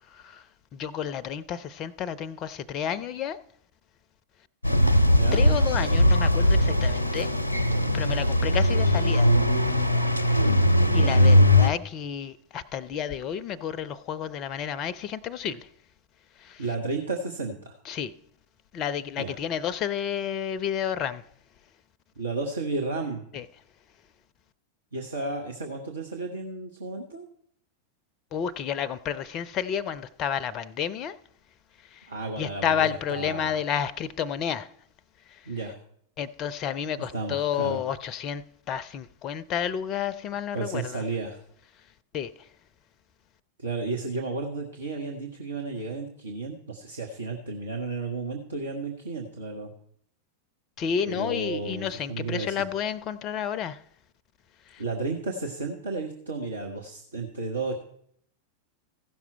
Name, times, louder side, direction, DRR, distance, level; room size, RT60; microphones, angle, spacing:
voice 1, 0.1-0.5 0.7-3.4 5.3-7.3 7.9-9.3 10.9-15.7 16.4-16.6 17.9-18.1 18.7-21.2 23.3-23.5 28.3-31.2 31.8-32.1 32.4-34.7 35.3-35.5 36.2-41.0 42.1-42.5 50.8-53.8 54.7-54.8, left 8 dB, 35° left, 0.4 m, -31 dB
sound 1, 4.6-11.7, left 1 dB, 85° left, 0.6 m, -20 dB
voice 2, 10.8-11.2 16.6-17.8 19.2-19.4 22.2-23.2 24.9-27.2 32.1-33.6 35.4-35.7 37.1-37.8 40.5-41.4 43.6-49.7 51.1-52.6 54.8-57.8, right 3 dB, 75° right, 1.0 m, -33 dB
15.0 x 6.0 x 4.5 m
figure-of-eight pair, 90°, 0 cm